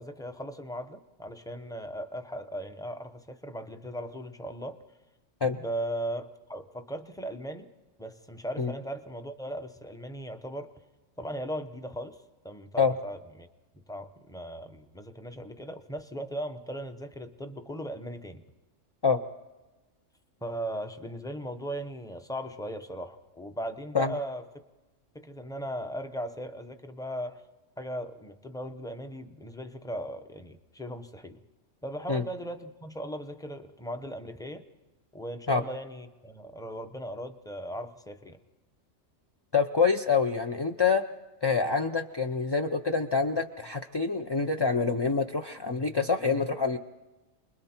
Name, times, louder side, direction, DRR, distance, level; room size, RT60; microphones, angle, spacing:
voice 1, 0.0-4.8 5.4-7.7 8.0-10.7 11.2-12.2 12.4-13.5 13.9-18.4 20.4-24.4 25.1-27.4 27.8-31.4 31.8-34.6 35.1-38.4, equal, 5° left, 7 dB, 0.8 m, -38 dB
voice 2, 39.5-41.0 41.4-46.8, left 5 dB, 30° left, 5 dB, 0.4 m, -26 dB
29.0 x 21.5 x 4.4 m, 1.1 s
omnidirectional pair, 1.3 m